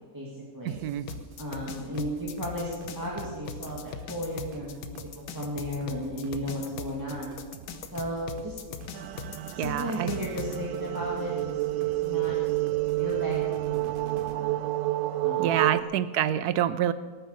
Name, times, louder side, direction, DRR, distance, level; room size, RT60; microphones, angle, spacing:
voice 1, 0.1-0.8 1.4-7.3 7.9-8.6 9.5-12.3 12.9-14.5 15.2-15.8, equal, 10° right, -4 dB, 2.0 m, -35 dB
voice 2, 0.6-1.1 9.6-10.1 15.4-16.9, right 11 dB, 70° right, 14 dB, 1.0 m, -26 dB
sound 1, 0.7-14.4, right 5 dB, 45° right, 0.7 m, -49 dB
sound 2, 1.1-10.6, left 7 dB, 75° left, 1.6 m, -39 dB
sound 3, 8.9-15.8, right 17 dB, 90° right, 1.3 m, -29 dB
19.0 x 9.2 x 6.6 m, 1.5 s
omnidirectional pair, 1.9 m